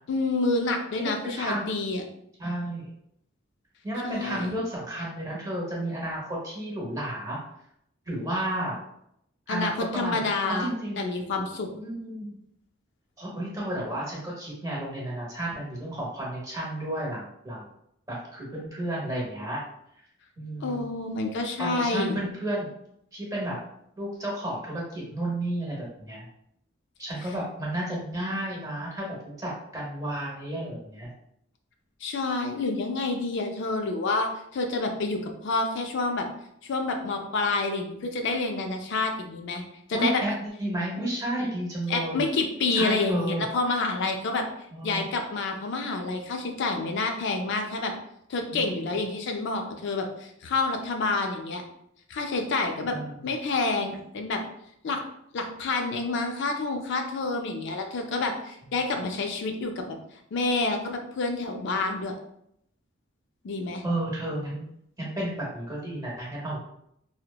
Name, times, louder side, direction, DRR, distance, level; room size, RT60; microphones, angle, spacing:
voice 1, 0.1-2.0 4.0-4.5 9.5-11.7 20.6-22.2 32.0-36.3 36.6-39.6 39.9-40.2 41.9-44.5 44.8-47.9 48.3-51.6 52.1-53.0 53.2-54.4 54.8-55.0 55.3-60.0 60.3-62.1 63.4-63.8, left 3 dB, 60° left, 4 dB, 0.4 m, -28 dB
voice 2, 1.0-1.7 2.4-2.9 3.8-7.4 8.1-8.8 9.5-11.0 11.8-12.4 13.2-17.7 18.1-19.6 20.4-20.8 21.6-22.7 23.1-23.6 24.0-26.3 27.0-31.1 39.9-42.2 42.7-43.4 44.7-45.0 48.5-48.9 52.9-53.3 58.6-58.8 63.8-64.6 65.0-66.6, right 1 dB, 15° right, -4 dB, 0.8 m, -32 dB
2.7 x 2.1 x 2.2 m, 0.75 s
head